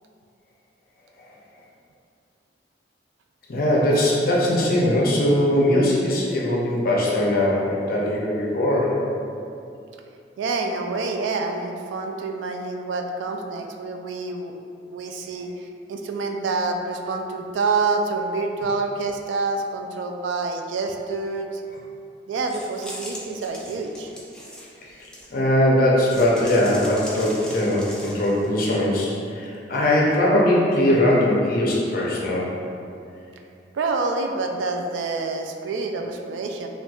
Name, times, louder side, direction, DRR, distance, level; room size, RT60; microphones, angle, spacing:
voice 1, 3.5-9.0 25.3-32.5, left 1 dB, 55° left, -4 dB, 0.6 m, -20 dB
voice 2, 10.4-14.5 14.8-21.6 22.3-24.1 33.7-36.7, right 3 dB, 80° right, 4 dB, 0.3 m, -27 dB
sound 1, 22.5-25.5 26.1-28.5, equal, 5° left, 0.4 m, -40 dB
4.3 x 2.3 x 2.3 m, 2.6 s
head